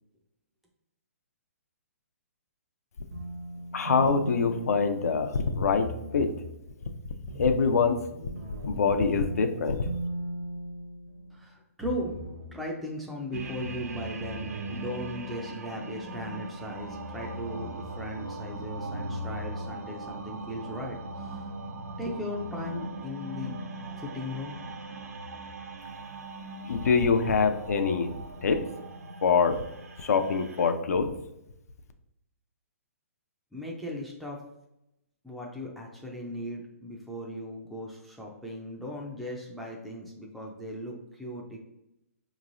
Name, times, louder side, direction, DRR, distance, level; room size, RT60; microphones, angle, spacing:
sound 1, 3.1-5.4 5.8-6.6 7.3-11.4 11.8-12.6 13.3-15.1, right 1 dB, 55° right, 0.9 m, -39 dB
voice 1, 3.7-6.3 7.4-8.0 8.6-9.9 26.7-28.1 28.4-28.7 29.2-29.6 30.0-31.1, left 5 dB, 80° left, 6 dB, 0.4 m, -24 dB
voice 2, 11.3-12.2 12.5-21.5 22.0-23.5 24.0-24.6 33.5-34.4 35.2-41.6, equal, ahead, -3 dB, 0.3 m, -37 dB
sound 2, 13.3-30.7, right 1 dB, 75° right, 0.6 m, -39 dB
4.6 x 3.0 x 2.5 m, 0.85 s
hypercardioid pair, 155°, 8 cm